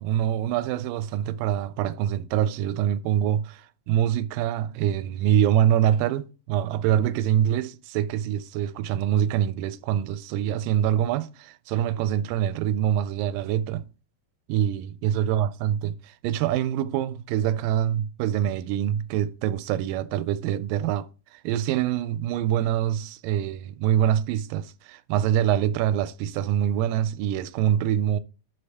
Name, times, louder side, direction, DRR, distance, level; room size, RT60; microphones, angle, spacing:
voice 1, 0.0-13.9 14.5-28.2, right 10 dB, 85° right, 2.2 m, -25 dB
11.5 x 4.0 x 3.4 m
omnidirectional pair, 3.9 m